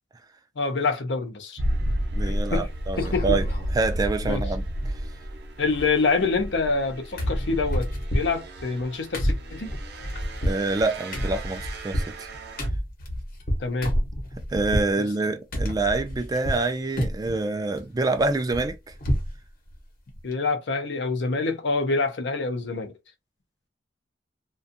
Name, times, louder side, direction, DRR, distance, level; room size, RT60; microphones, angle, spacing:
voice 1, 0.6-1.6 2.5-2.7 3.0-3.4 4.2-4.4 5.6-9.7 13.6-13.9 15.0-15.1 20.2-23.0, left 4 dB, 70° left, 0.6 m, -26 dB
sound 1, 1.6-12.7, equal, 60° right, 0.6 m, -32 dB
voice 2, 2.1-3.4 3.7-4.9 10.4-12.3 14.5-18.8, right 3 dB, 20° right, 0.3 m, -26 dB
sound 2, 2.2-2.6 3.0-3.8 4.1-4.2 4.4-5.3 5.5-6.9 7.2-14.9 15.5-16.7 17.0-17.4 17.8-19.4 19.7-19.8 20.1-20.3, equal, 55° left, 1.0 m, -29 dB
2.5 x 2.3 x 2.5 m
head